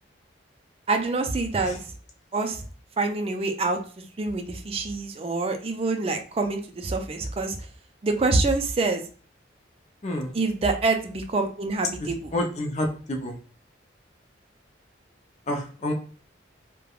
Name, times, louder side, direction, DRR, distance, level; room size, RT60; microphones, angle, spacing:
voice 1, 0.9-1.8 2.3-2.6 3.0-7.6 8.0-9.0 10.3-12.3, right 3 dB, 30° right, 5 dB, 0.4 m, -26 dB
voice 2, 10.0-10.3 12.3-13.4 15.5-15.9, left 1 dB, 35° left, 3 dB, 0.5 m, -28 dB
3.2 x 2.1 x 2.3 m, 0.40 s
head